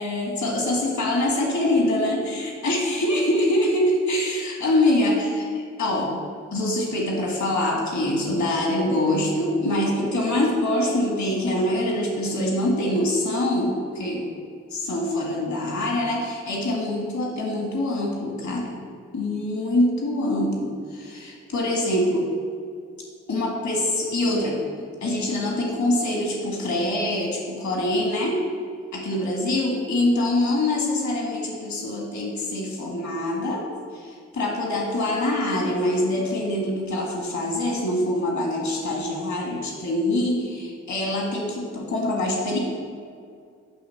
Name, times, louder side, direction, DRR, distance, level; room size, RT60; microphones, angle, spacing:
voice 1, 0.0-6.2 6.5-14.2 14.7-18.8 19.1-22.3 23.3-24.6 25.0-28.4 28.9-33.6 33.9-42.6, left 1 dB, 65° left, -1 dB, 1.7 m, -24 dB
9.2 x 3.1 x 5.7 m, 2.2 s
supercardioid pair, 45°, 31 cm